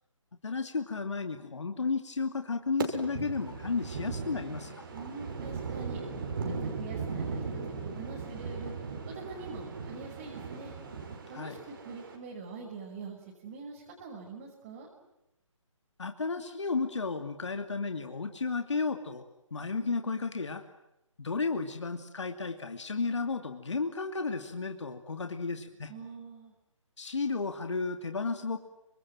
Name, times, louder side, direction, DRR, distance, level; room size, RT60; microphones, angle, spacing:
voice 1, 0.4-4.9 11.3-11.6 16.0-20.6 21.2-25.9 27.0-28.6, left 4 dB, 60° left, 6 dB, 2.6 m, -33 dB
sound 1, 2.8-12.2, right 4 dB, 40° right, 6.0 m, -38 dB
voice 2, 4.9-6.0 6.5-10.7 11.3-11.6 11.8-14.9 25.9-26.5, right 4 dB, 25° right, -2 dB, 6.1 m, -44 dB
29.5 x 26.0 x 7.8 m, 0.91 s
figure-of-eight pair, 145°, 17 cm